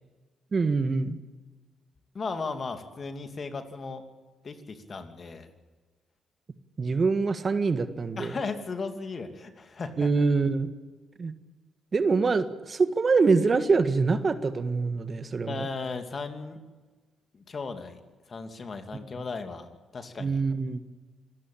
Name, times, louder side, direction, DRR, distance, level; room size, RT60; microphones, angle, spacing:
voice 1, 0.5-1.2 6.8-8.3 10.0-10.7 11.2-11.3 11.9-15.7 20.2-20.8, right 4 dB, 40° right, 10 dB, 1.6 m, -24 dB
voice 2, 2.1-4.0 4.4-5.5 8.2-10.1 15.5-16.6 17.3-18.0 18.3-20.4, left 4 dB, 45° left, 7 dB, 2.7 m, -36 dB
26.0 x 15.5 x 8.7 m, 1.3 s
hypercardioid pair, 45°, 0 cm